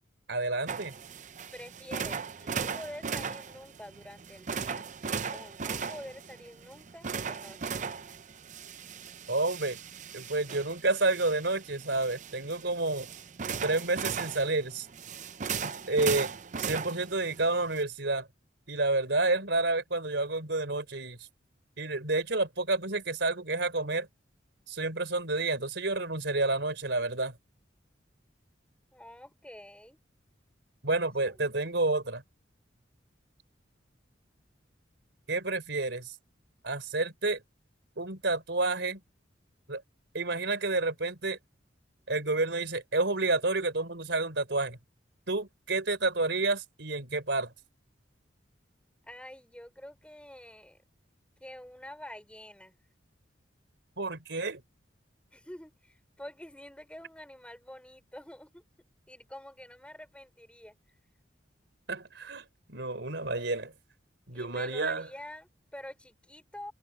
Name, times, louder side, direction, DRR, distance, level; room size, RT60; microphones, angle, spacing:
voice 1, 0.3-0.9 9.3-9.8 10.1-13.1 13.6-14.9 15.6-18.3 18.7-21.3 21.8-24.1 24.7-27.4 30.8-32.2 35.3-36.2 36.6-37.4 38.0-39.0 39.7-39.8 40.1-41.4 42.1-44.8 45.3-47.5 54.0-54.6 61.9-63.7 64.3-65.1, right 2 dB, 70° right, 4.2 m, -30 dB
sound 1, 0.7-17.8, right 6 dB, 40° right, 0.6 m, -38 dB
voice 2, 1.5-4.8 5.3-7.6 28.9-30.0 49.1-50.8 51.4-52.7 55.3-58.6 59.1-60.7 64.3-66.7, left 1 dB, 5° left, 5.1 m, -47 dB
head